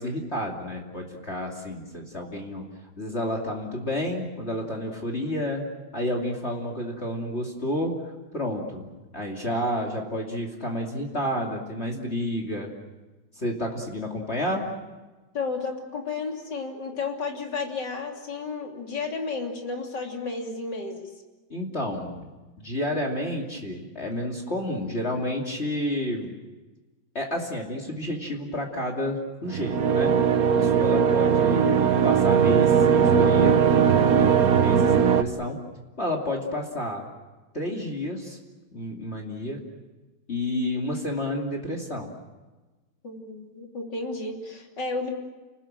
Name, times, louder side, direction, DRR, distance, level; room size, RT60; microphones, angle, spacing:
voice 1, 0.0-2.7 3.0-5.6 5.9-12.7 13.3-14.7 21.5-22.1 22.6-26.3 27.1-30.1 30.5-35.6 36.0-37.0 37.5-38.4 38.7-39.6 40.3-42.1, left 1 dB, 30° left, 0 dB, 2.9 m, -30 dB
voice 2, 15.3-21.1 43.0-45.1, left 4 dB, 55° left, 1 dB, 3.7 m, -32 dB
sound 1, 29.4-35.2, right 7 dB, 50° right, 1.4 m, -19 dB
30.0 x 19.5 x 7.6 m, 1.2 s
omnidirectional pair, 2.3 m